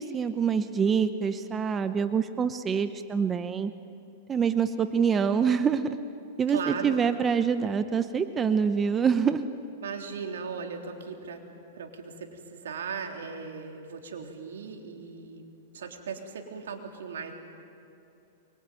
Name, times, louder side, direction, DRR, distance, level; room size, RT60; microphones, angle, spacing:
voice 1, 0.0-3.7 4.3-5.9 6.4-9.4, right 6 dB, 20° right, 10 dB, 0.9 m, -25 dB
voice 2, 6.5-7.0 9.8-11.4 11.7-15.5 15.7-17.3, right 5 dB, 90° right, 3 dB, 3.5 m, -38 dB
24.5 x 23.5 x 9.2 m, 2.8 s
hypercardioid pair, 140°, 0 cm